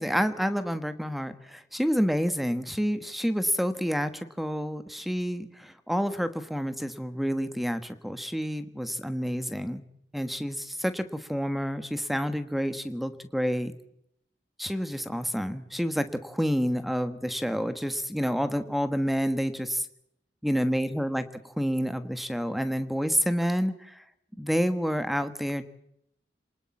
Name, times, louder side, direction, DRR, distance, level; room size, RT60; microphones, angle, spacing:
voice 1, 0.0-9.8 10.1-13.7 14.6-19.9 20.4-24.0 24.4-25.6, equal, ahead, 11 dB, 1.3 m, -29 dB
28.0 x 20.0 x 7.2 m, 0.76 s
head